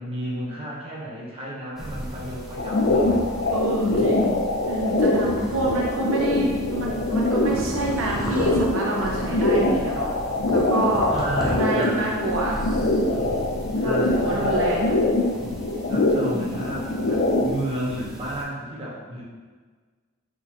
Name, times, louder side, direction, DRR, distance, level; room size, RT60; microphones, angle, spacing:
voice 1, 0.0-4.1 11.1-12.3 13.8-14.7 15.9-19.2, right 1 dB, 25° right, -6 dB, 1.0 m, -32 dB
sound 1, 1.8-18.4, equal, ahead, 0.5 m, -35 dB
sound 2, 2.6-17.5, left 2 dB, 55° left, 0.5 m, -23 dB
voice 2, 3.5-4.4 4.7-10.1 10.5-11.2 11.5-12.6 13.0-15.1 16.3-16.6, right 1 dB, 65° right, -2 dB, 0.5 m, -27 dB
4.4 x 3.7 x 3.0 m, 1.5 s
head